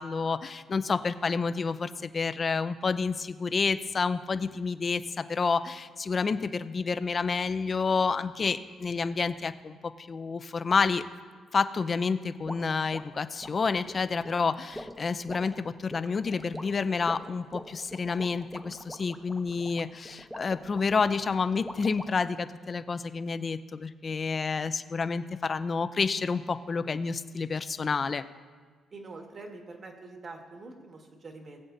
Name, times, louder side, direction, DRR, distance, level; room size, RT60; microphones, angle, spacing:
voice 1, 0.0-11.0 11.5-28.2, left 5 dB, 40° left, 12 dB, 0.5 m, -29 dB
sound 1, 12.5-22.4, equal, ahead, 0.8 m, -44 dB
voice 2, 28.9-31.6, right 3 dB, 45° right, 2 dB, 1.9 m, -45 dB
20.0 x 7.8 x 2.8 m, 1.5 s
cardioid pair, 90°, 0 cm